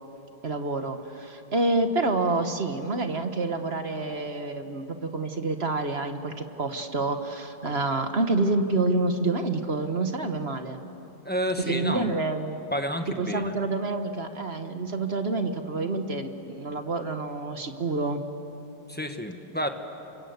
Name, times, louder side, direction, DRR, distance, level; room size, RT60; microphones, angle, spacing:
voice 1, 0.4-10.8 11.6-12.6 13.2-18.2, right 3 dB, 35° right, 7 dB, 1.3 m, -28 dB
voice 2, 11.2-12.2 12.7-13.6 18.9-19.7, equal, 5° left, 5 dB, 1.2 m, -30 dB
29.0 x 25.0 x 8.1 m, 3.0 s
omnidirectional pair, 2.1 m